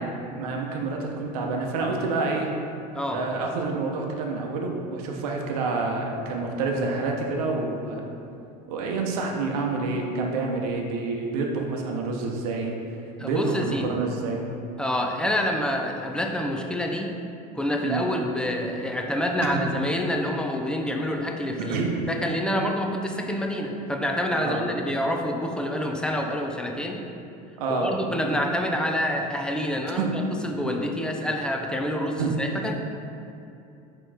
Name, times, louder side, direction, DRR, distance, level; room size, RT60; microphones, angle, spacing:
voice 1, 0.0-2.5 3.1-8.0 8.7-12.7 13.2-14.4 17.8-18.1 21.6-21.9 24.4-24.6 27.6-27.9 28.2-28.4 30.0-30.2 32.2-32.3, right 3 dB, 85° right, 1 dB, 0.7 m, -28 dB
voice 2, 13.2-14.0 14.8-17.1 17.5-27.0 27.7-32.8, left 1 dB, 5° left, 2 dB, 0.3 m, -27 dB
5.2 x 3.0 x 3.4 m, 2.7 s
supercardioid pair, 120°, 19 cm